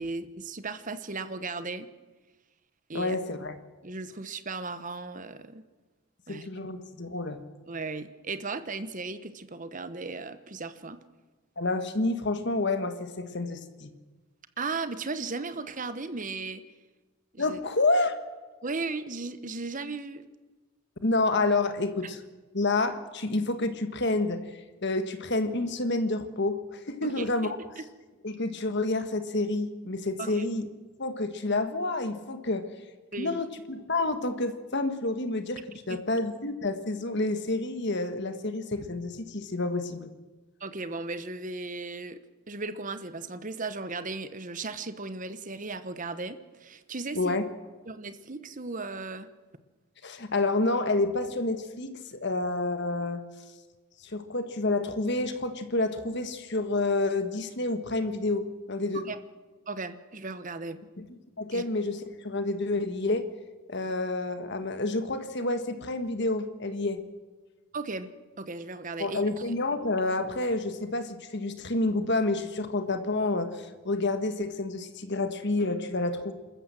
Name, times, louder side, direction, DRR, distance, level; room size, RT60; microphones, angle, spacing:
voice 1, 0.0-1.9 2.9-3.2 3.8-5.6 6.3-6.5 7.7-11.0 14.6-16.6 17.3-17.6 18.6-20.2 27.0-27.8 30.2-30.4 33.1-33.4 35.9-36.0 40.6-42.2 42.5-47.4 47.9-49.3 58.9-59.2 59.7-60.8 61.5-61.6 63.8-63.9 67.7-68.1 68.4-69.2, right 3 dB, 35° right, 12 dB, 1.0 m, -36 dB
voice 2, 2.9-3.5 6.3-7.4 11.6-13.9 17.4-18.1 21.0-22.2 22.5-27.6 28.2-30.7 31.0-32.7 33.2-40.1 47.1-47.5 50.0-53.2 54.0-59.0 61.0-61.1 61.4-63.3 63.7-67.0 69.0-76.3, left 2 dB, 50° left, 9 dB, 1.5 m, -29 dB
26.5 x 14.0 x 7.7 m, 1.3 s
head